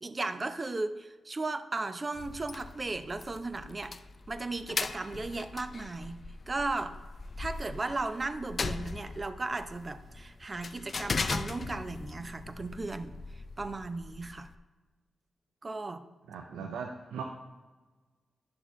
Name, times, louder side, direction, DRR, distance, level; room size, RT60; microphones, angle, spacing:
voice 1, 0.0-3.9 4.3-6.2 6.5-6.9 7.4-13.1 13.6-14.5 15.6-16.0, right 3 dB, 40° right, 10 dB, 0.6 m, -36 dB
sound 1, 2.1-14.6, left 4 dB, 55° left, 0.4 m, -39 dB
voice 2, 16.3-17.2, right 6 dB, 85° right, 4 dB, 0.5 m, -39 dB
10.5 x 6.2 x 3.2 m, 1.3 s
supercardioid pair, 40°, 0 cm